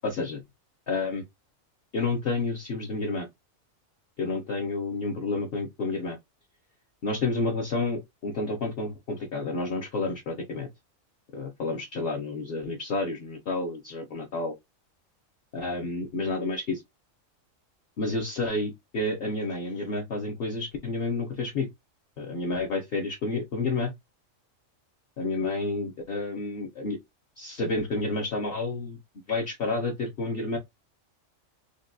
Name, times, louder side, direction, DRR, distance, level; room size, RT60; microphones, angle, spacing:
voice 1, 0.0-0.4 0.9-1.2 1.9-3.3 4.2-6.2 7.0-10.7 11.3-14.5 15.5-16.8 18.0-21.7 22.2-23.9 25.2-27.0 27.4-29.0 29.3-30.6, left 3 dB, 55° left, 0.8 m, -30 dB
3.4 x 2.2 x 2.5 m
omnidirectional pair, 1.4 m